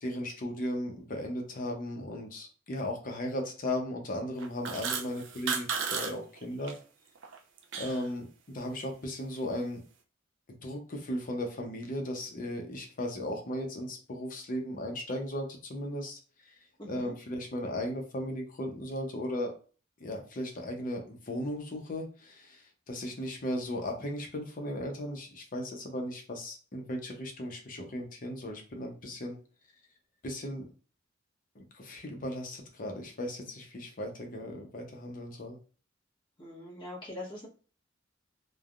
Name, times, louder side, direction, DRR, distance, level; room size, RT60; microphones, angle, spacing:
voice 1, 0.0-6.7 7.8-9.8 10.6-16.2 16.8-19.5 20.0-29.4 30.2-30.7 31.5-35.6, left 1 dB, 45° left, 2 dB, 0.7 m, -36 dB
sound 1, 4.4-6.1 6.4-6.7 7.2-8.1, right 6 dB, 70° right, 0.5 m, -34 dB
voice 2, 16.8-17.1 36.4-37.5, left 1 dB, 25° left, -4 dB, 1.1 m, -42 dB
3.3 x 2.1 x 2.4 m, 0.38 s
head